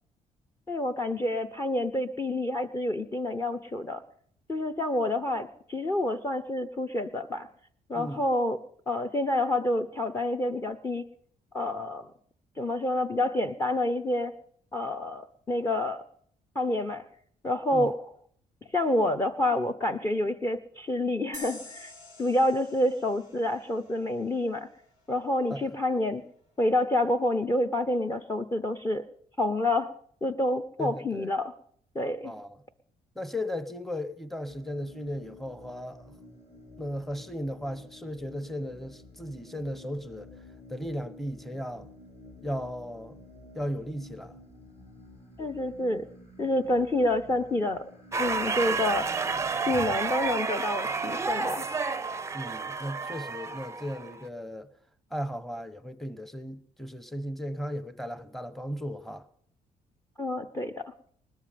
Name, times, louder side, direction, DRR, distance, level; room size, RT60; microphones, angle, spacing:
voice 1, 0.7-4.0 4.5-7.5 7.9-8.6 8.9-11.0 11.5-12.1 12.6-14.3 14.7-16.0 16.5-17.0 17.4-18.0 18.7-21.9 22.2-24.7 25.1-26.2 26.6-29.1 29.4-29.9 30.2-31.5 31.9-32.3 45.4-46.1 46.4-47.8 48.2-49.1 49.7-51.7 60.2-60.8, left 1 dB, 20° left, 0.8 m, -28 dB
sound 1, 21.3-24.7, left 2 dB, 65° left, 6.3 m, -48 dB
voice 2, 30.8-31.3 32.2-32.6 33.1-36.1 36.8-40.3 40.7-41.9 42.4-43.2 43.5-44.4 52.3-54.7 55.1-59.3, equal, ahead, 0.9 m, -36 dB
sound 2, 34.5-50.4, left 2 dB, 45° left, 3.3 m, -51 dB
sound 3, 48.1-54.3, right 4 dB, 20° right, 0.5 m, -31 dB
20.0 x 13.0 x 5.1 m
cardioid pair, 115°, 15 cm